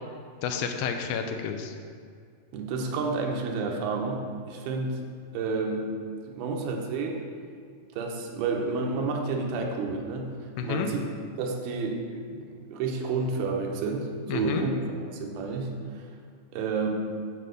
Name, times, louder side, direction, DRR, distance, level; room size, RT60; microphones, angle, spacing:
voice 1, 0.4-1.8 10.6-10.9 14.3-14.7, left 7 dB, 85° left, 5 dB, 2.4 m, -30 dB
voice 2, 2.5-5.0 5.3-5.9 6.3-7.2 7.9-10.3 10.6-11.0 11.4-14.7 15.1-16.1 16.5-16.9, right 4 dB, 90° right, 1 dB, 2.7 m, -30 dB
8.9 x 3.7 x 6.7 m, 2.1 s
omnidirectional pair, 4.2 m